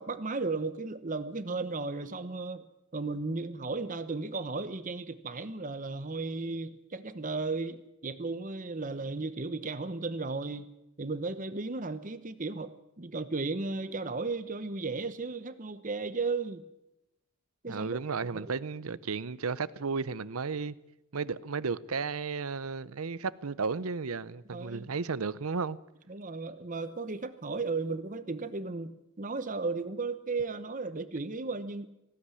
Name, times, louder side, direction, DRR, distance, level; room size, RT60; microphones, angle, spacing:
voice 1, 0.0-2.7 2.9-10.7 11.0-16.6 17.6-17.9 18.3-18.5 24.5-24.9 26.1-31.9, right 3 dB, 35° right, 1.0 m, -35 dB
voice 2, 17.7-20.7 21.1-25.8, right 5 dB, 85° right, 0.7 m, -34 dB
18.5 x 16.0 x 9.8 m
head